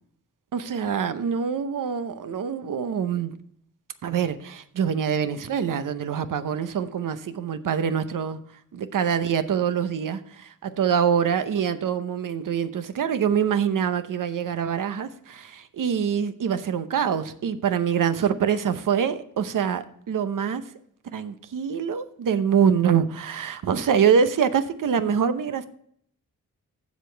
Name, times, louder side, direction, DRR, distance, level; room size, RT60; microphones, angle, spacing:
voice 1, 0.5-3.3 4.0-8.4 8.7-20.7 21.1-25.7, right 7 dB, 80° right, 0.8 m, -25 dB
15.5 x 5.2 x 3.3 m
wide cardioid pair, 85°, 32 cm